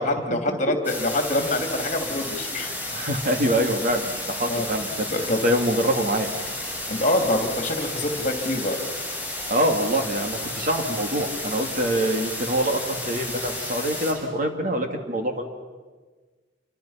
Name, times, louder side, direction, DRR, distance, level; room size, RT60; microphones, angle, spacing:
voice 1, 0.0-2.8 4.0-4.1 4.5-4.7 5.1-5.4 6.9-8.8, left 1 dB, 40° left, 4 dB, 3.0 m, -25 dB
sound 1, 0.8-14.1, left 1 dB, 10° right, 6.1 m, -32 dB
voice 2, 2.9-4.9 5.4-6.6 9.5-15.5, right 1 dB, 50° right, 4 dB, 2.5 m, -25 dB
28.5 x 25.0 x 5.8 m, 1.4 s
head